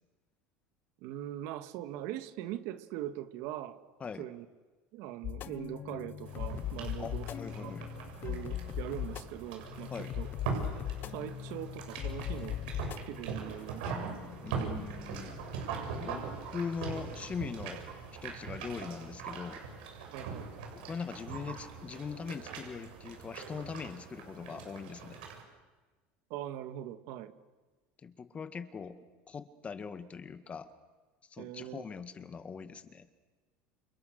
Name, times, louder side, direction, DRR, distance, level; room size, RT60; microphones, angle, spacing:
voice 1, 1.0-3.8 4.2-4.4 4.9-7.3 7.6-7.8 8.2-10.3 11.1-12.6 13.1-14.2 14.6-14.9 20.1-20.5 26.3-27.3 31.4-31.8, right 12 dB, 70° right, 10 dB, 1.7 m, -41 dB
sound 1, 5.2-17.8, left 11 dB, 40° left, 0.8 m, -41 dB
sound 2, 6.2-25.4, right 5 dB, 85° right, 7.1 m, -42 dB
voice 2, 7.0-7.9 9.9-10.1 14.4-15.4 16.0-16.3 16.5-17.8 18.2-19.6 20.7-25.2 28.0-30.7 31.3-33.1, left 6 dB, 25° left, 10 dB, 1.8 m, -41 dB
29.0 x 28.0 x 6.7 m, 1.3 s
supercardioid pair, 115°, 5 cm